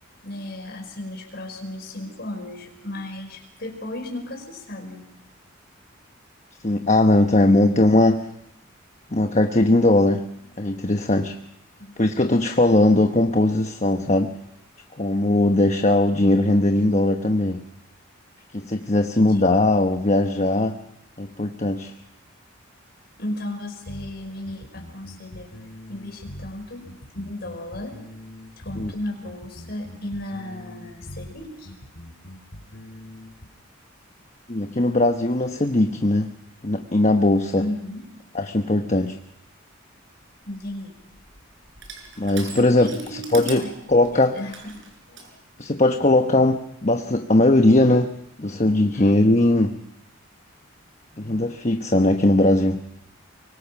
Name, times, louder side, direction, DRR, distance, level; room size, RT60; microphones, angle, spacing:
voice 1, 0.2-5.0 11.8-12.0 19.1-19.5 23.2-25.5 25.9-26.9 27.1-28.0 28.6-31.7 37.5-38.0 40.5-41.0 42.8-43.7 44.1-44.8 45.1-45.4 48.9-49.1, left 1 dB, 50° left, 4 dB, 5.4 m, -35 dB
voice 2, 6.6-8.3 9.1-10.3 10.6-11.4 12.0-14.3 15.0-17.6 18.5-20.8 21.2-21.9 28.8-28.9 34.5-36.3 36.6-37.7 38.3-39.2 42.2-42.9 43.3-43.6 43.9-44.3 45.6-48.1 48.4-49.8 51.2-52.8, left 2 dB, 35° left, 5 dB, 1.1 m, -19 dB
sound 1, 23.9-33.5, left 1 dB, 65° left, 4.5 m, -42 dB
Crushing, 40.4-45.3, right 5 dB, 60° right, 6.1 m, -42 dB
24.5 x 24.0 x 6.0 m, 0.80 s
head